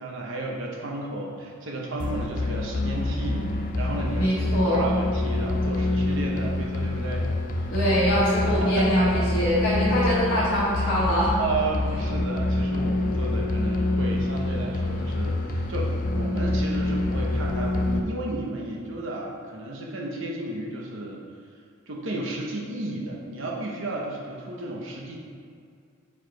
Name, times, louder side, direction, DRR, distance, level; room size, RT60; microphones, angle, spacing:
voice 1, 0.0-7.3 8.5-9.2 11.4-21.2 21.9-25.2, right 2 dB, 65° right, -2 dB, 0.9 m, -33 dB
sound 1, 2.0-18.0, left 2 dB, 40° left, 0.4 m, -26 dB
voice 2, 4.2-4.8 7.7-11.4, equal, 60° left, -11 dB, 1.4 m, -24 dB
4.7 x 4.7 x 4.5 m, 2.3 s
head